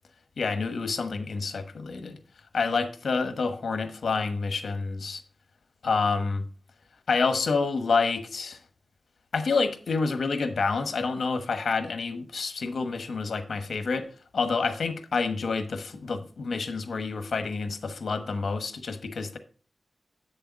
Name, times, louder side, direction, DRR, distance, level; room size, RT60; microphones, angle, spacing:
voice 1, 0.4-2.2 2.5-5.2 5.8-6.5 7.1-8.6 9.3-14.1 14.3-19.4, left 4 dB, 85° left, 1.2 m, -28 dB
8.2 x 6.7 x 5.2 m
wide cardioid pair, 125°, 0 cm